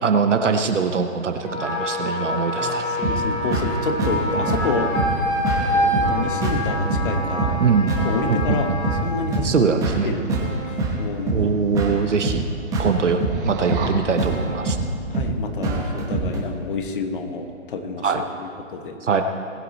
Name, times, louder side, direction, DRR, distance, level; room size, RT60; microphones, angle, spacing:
voice 1, 0.0-2.9 7.6-8.0 8.3-8.6 9.4-10.1 11.3-12.4 12.8-14.8 18.0-18.2 19.0-19.2, right 5 dB, 65° right, 6 dB, 1.0 m, -22 dB
Wind instrument woodwind instrument, 1.4-9.1, left 1 dB, 10° left, 0.7 m, -26 dB
voice 2, 2.6-4.9 5.7-7.6 8.0-9.7 10.0-10.2 10.6-11.5 15.1-19.0, left 4 dB, 40° left, 7 dB, 1.3 m, -29 dB
sound 1, 2.7-9.5 10.6-11.0 11.3-11.4 11.9-12.0 12.3-12.9 13.2-13.9, right 2 dB, 40° right, 3.0 m, -34 dB
sound 2, 3.0-16.4, right 2 dB, 10° right, 1.1 m, -26 dB
19.5 x 8.5 x 4.3 m, 2.4 s
figure-of-eight pair, 140°, 40 cm